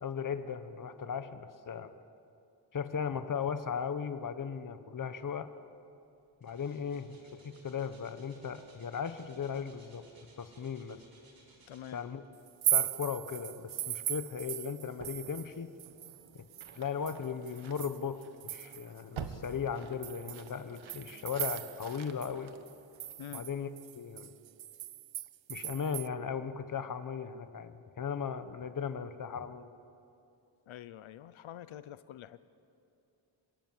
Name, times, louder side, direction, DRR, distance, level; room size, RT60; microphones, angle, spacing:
voice 1, 0.0-1.9 2.7-5.5 6.4-10.0 10.4-11.0 11.9-12.2 12.7-15.7 16.3-16.4 16.7-22.5 23.3-23.7 23.9-24.3 25.5-29.7, left 6 dB, 45° left, 11 dB, 1.2 m, -37 dB
sound 1, 5.6-5.8 6.1-12.4 13.0-13.1, right 2 dB, 50° right, 4.3 m, -62 dB
voice 2, 11.7-12.0 23.2-23.5 30.7-32.5, left 11 dB, 85° left, 14 dB, 0.8 m, -46 dB
sound 2, 12.5-15.5 15.8-19.0 19.4-19.5 20.0-22.0 22.2-22.3 22.7-26.1, right 13 dB, 70° right, 0.7 m, -37 dB
sound 3, 15.0-23.4, right 7 dB, 85° right, 1.7 m, -50 dB
29.0 x 25.5 x 7.5 m, 2.6 s
wide cardioid pair, 180°, 46 cm